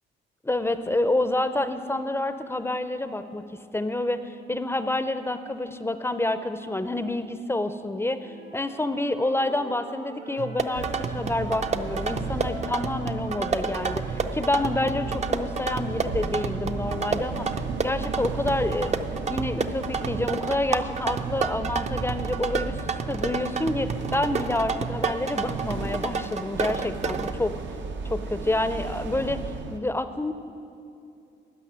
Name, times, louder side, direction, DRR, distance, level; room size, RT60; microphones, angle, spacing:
voice 1, 0.4-3.4 3.7-10.8 11.1-17.5 17.8-18.9 19.3-22.8 23.1-27.5 28.0-29.4 29.7-30.3, left 2 dB, 10° left, 11 dB, 0.6 m, -28 dB
Wind instrument woodwind instrument, 8.2-12.0 12.3-16.3, right 2 dB, 90° right, 1.5 m, -45 dB
sound 1, 10.4-27.3, right 5 dB, 35° right, 0.6 m, -30 dB
sound 2, 10.7-29.8, right 4 dB, 70° right, 0.9 m, -35 dB
12.5 x 5.8 x 9.5 m, 2.6 s
cardioid pair, 90°, 20 cm